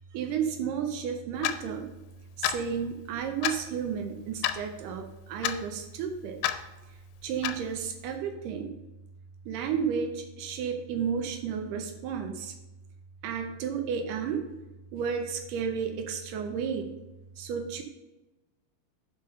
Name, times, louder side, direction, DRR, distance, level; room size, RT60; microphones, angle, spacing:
voice 1, 0.1-1.9 2.4-6.4 6.9-8.8 9.5-12.5 13.2-14.4 14.9-16.9 17.4-17.8, right 7 dB, 80° right, 5 dB, 1.9 m, -32 dB
Clock, 1.4-1.6 2.4-2.6 3.4-3.6 4.4-4.6 5.4-5.6 6.4-6.6 7.4-7.6, left 12 dB, 80° left, 2.3 m, -28 dB
5.5 x 5.3 x 5.5 m, 1.0 s
omnidirectional pair, 4.6 m